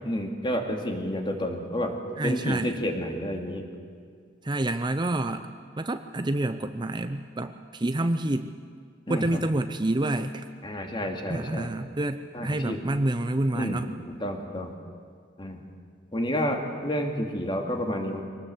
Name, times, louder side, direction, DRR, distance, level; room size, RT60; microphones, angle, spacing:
voice 1, 0.0-1.9 2.2-3.7 9.1-9.3 10.6-11.7 12.3-12.8 13.5-13.8 14.1-14.7 15.4-15.6 16.1-18.2, equal, 30° left, 3 dB, 2.5 m, -30 dB
voice 2, 2.2-2.7 4.4-5.5 5.8-8.5 9.1-10.4 11.3-13.9, right 1 dB, 25° right, 9 dB, 0.7 m, -28 dB
23.5 x 19.0 x 8.0 m, 2.2 s
head